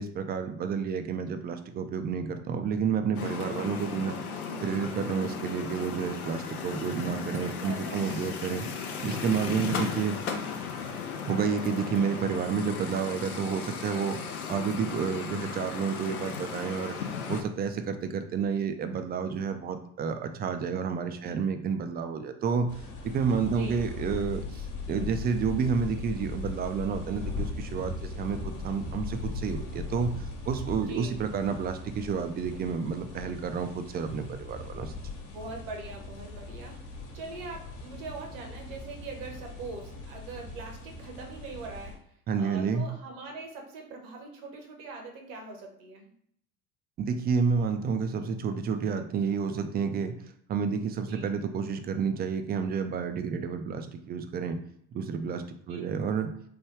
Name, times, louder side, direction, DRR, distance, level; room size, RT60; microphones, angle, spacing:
voice 1, 0.0-4.2 4.6-8.7 9.0-10.2 11.2-14.2 14.5-17.0 17.3-22.7 23.0-28.4 28.6-34.9 42.3-42.9 47.0-50.2 50.5-54.6 54.9-56.3, right 6 dB, 25° right, 7 dB, 0.3 m, -30 dB
sound 1, 3.1-17.4, left 6 dB, 90° left, 0.5 m, -36 dB
voice 2, 7.6-8.2 21.2-21.4 23.4-23.8 30.8-31.2 35.2-41.9 42.4-46.1 51.0-51.3 55.7-55.9, right 3 dB, 65° right, 1 dB, 1.0 m, -42 dB
sound 2, 22.7-42.0, left 3 dB, 45° left, 1.2 m, -39 dB
3.1 x 2.2 x 3.2 m, 0.69 s
hypercardioid pair, 65°, 43 cm